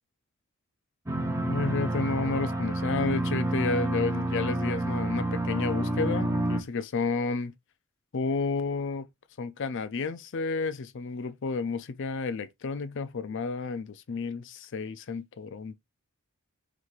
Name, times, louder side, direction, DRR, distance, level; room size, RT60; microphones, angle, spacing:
sound 1, 1.1-6.6, right 1 dB, 15° right, 0.6 m, -29 dB
voice 1, 1.4-7.5 8.1-9.1 9.4-15.8, left 4 dB, 60° left, 0.5 m, -31 dB
4.1 x 3.3 x 3.1 m
head